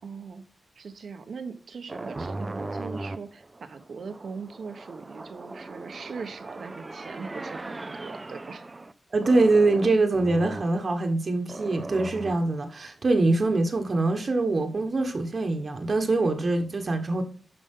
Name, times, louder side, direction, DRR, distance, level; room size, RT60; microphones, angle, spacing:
voice 1, 0.0-0.4 0.8-8.7, right 5 dB, 60° right, 1.0 m, -40 dB
sound 1, 1.9-8.9 9.2-10.7 11.5-12.6, right 2 dB, 20° right, 0.5 m, -38 dB
voice 2, 9.1-17.2, right 2 dB, 40° right, 1.3 m, -24 dB
12.0 x 5.3 x 3.7 m
wide cardioid pair, 160°, 0 cm